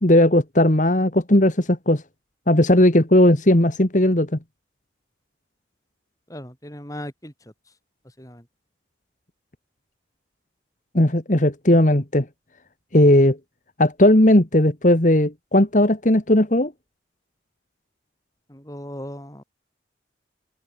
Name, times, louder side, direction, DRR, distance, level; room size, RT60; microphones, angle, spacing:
voice 1, 0.0-2.0 2.5-4.4 10.9-12.3 12.9-13.4 13.8-16.7, left 1 dB, 40° left, 2.0 m, -17 dB
voice 2, 6.3-7.5 8.2-8.4 11.7-11.8 18.5-19.4, equal, 20° left, 6.5 m, -37 dB
open air
head